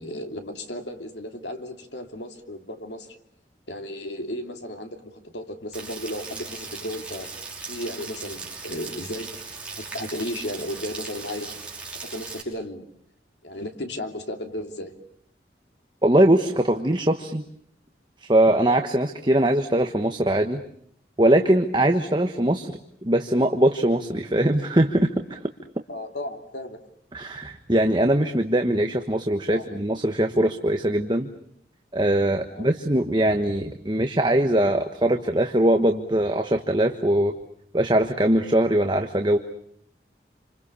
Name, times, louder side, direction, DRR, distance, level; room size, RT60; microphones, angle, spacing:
voice 1, 0.0-3.2 3.7-7.3 7.7-9.4 9.8-11.6 12.0-12.8 13.4-14.9 25.9-26.8 29.5-29.8 32.5-32.7, left 1 dB, 85° left, 5 dB, 3.0 m, -34 dB
Rain, 5.7-12.4, right 4 dB, 5° right, 5.6 m, -38 dB
voice 2, 16.0-17.4 18.2-20.6 21.2-25.4 27.1-31.3 31.9-37.3 37.7-39.4, right 1 dB, 25° right, 5 dB, 1.2 m, -21 dB
28.5 x 26.5 x 7.0 m, 0.68 s
head